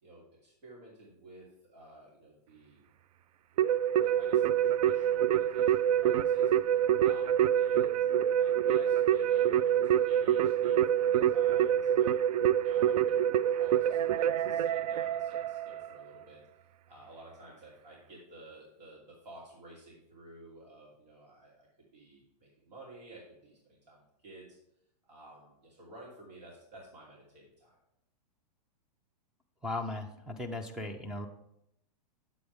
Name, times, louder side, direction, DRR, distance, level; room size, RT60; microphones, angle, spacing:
voice 1, 0.0-2.8 4.0-6.7 7.0-8.0 8.4-12.2 12.6-16.4 16.9-21.7 21.9-24.6 25.0-27.8, right 1 dB, 85° right, -4 dB, 3.0 m, -53 dB
Keyboard (musical), 3.6-16.0, right 10 dB, 70° right, 0.4 m, -26 dB
voice 2, 29.6-31.3, left 2 dB, 5° right, 5 dB, 0.4 m, -37 dB
9.4 x 7.8 x 3.4 m, 0.78 s
hypercardioid pair, 155°, 20 cm